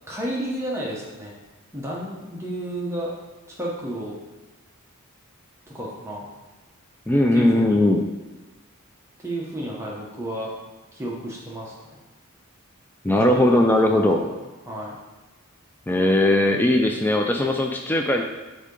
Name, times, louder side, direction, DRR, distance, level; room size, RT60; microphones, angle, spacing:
voice 1, 0.1-1.3 1.7-3.1 3.6-4.2 5.7-6.3 7.3-7.8 9.2-10.5 10.9-12.0 13.3-14.3 14.7-15.0, right 1 dB, 10° right, -4 dB, 0.9 m, -32 dB
voice 2, 7.1-8.0 13.0-14.2 15.9-18.2, left 1 dB, 10° left, 2 dB, 0.3 m, -19 dB
8.2 x 2.8 x 5.2 m, 1.2 s
head